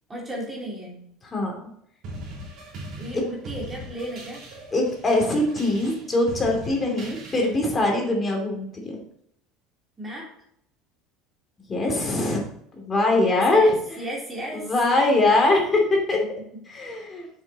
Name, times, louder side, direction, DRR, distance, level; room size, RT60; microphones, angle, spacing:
voice 1, 0.1-1.1 3.0-4.4 6.8-7.0 10.0-10.3 13.3-14.9, right 1 dB, 20° right, -3 dB, 3.2 m, -35 dB
sound 1, 2.0-7.7, right 1 dB, 55° right, 3.4 m, -40 dB
voice 2, 4.7-9.0 11.7-12.4 12.8-13.8 14.5-16.2 16.7-17.3, left 2 dB, 25° left, 0 dB, 2.8 m, -22 dB
7.2 x 6.2 x 4.2 m, 0.70 s
supercardioid pair, 105°, 0 cm